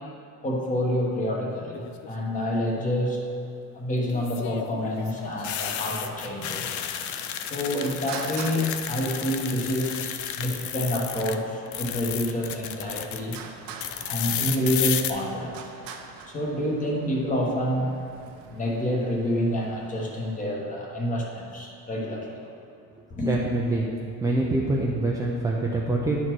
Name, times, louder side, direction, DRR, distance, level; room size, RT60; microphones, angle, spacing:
voice 1, 0.4-3.2 3.7-6.7 7.5-13.4 13.9-15.7 16.3-17.9 18.5-22.5 23.2-23.4, equal, 25° left, -2 dB, 1.2 m, -28 dB
sound 1, 1.7-2.2 4.1-11.4 11.7-13.4 13.8-15.1, left 10 dB, 60° left, 0.5 m, -32 dB
Traffic noise roadway noise, 4.9-20.4, right 6 dB, 85° right, 0.8 m, -46 dB
voice 2, 23.2-23.9 24.2-26.2, right 2 dB, 10° right, -3 dB, 0.4 m, -25 dB
10.0 x 4.2 x 4.6 m, 2.4 s
cardioid pair, 150°, 34 cm